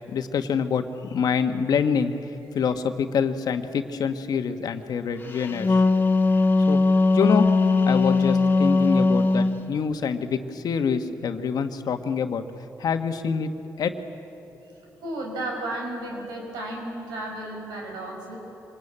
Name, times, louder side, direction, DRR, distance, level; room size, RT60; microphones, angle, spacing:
voice 1, 0.1-2.1 2.5-5.8 6.7-6.8 7.1-7.5 7.8-12.4 12.8-13.5 13.8-13.9, left 6 dB, 70° left, 7 dB, 1.4 m, -26 dB
Wind instrument woodwind instrument, 5.4-9.6, left 3 dB, 30° left, 1.8 m, -19 dB
voice 2, 15.0-18.4, right 1 dB, 90° right, 0 dB, 5.3 m, -33 dB
25.0 x 19.5 x 8.8 m, 3.0 s
supercardioid pair, 55°, 7 cm